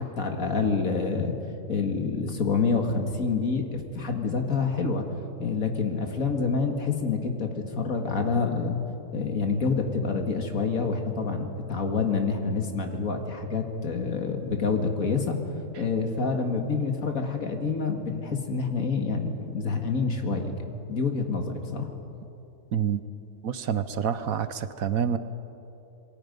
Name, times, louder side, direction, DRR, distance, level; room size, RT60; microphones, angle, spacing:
voice 1, 0.0-1.3 1.7-5.0 5.4-8.8 9.1-15.4 15.7-20.5 20.9-21.9, left 4 dB, 60° left, 4 dB, 2.3 m, -27 dB
voice 2, 23.4-25.2, right 8 dB, 65° right, 12 dB, 1.2 m, -27 dB
27.5 x 22.0 x 5.3 m, 2.8 s
omnidirectional pair, 1.6 m